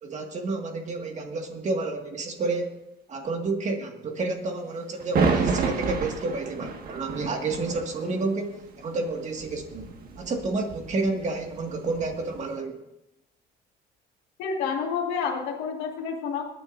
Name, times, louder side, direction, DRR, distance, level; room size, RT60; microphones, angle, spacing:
voice 1, 0.0-2.8 3.1-12.8, right 3 dB, 45° right, 3 dB, 1.9 m, -30 dB
sound 1, 5.0-12.5, right 4 dB, 60° right, 1.7 m, -30 dB
voice 2, 14.4-16.4, left 6 dB, 90° left, -1 dB, 1.9 m, -29 dB
21.5 x 9.4 x 2.6 m, 0.91 s
cardioid pair, 110°, 17 cm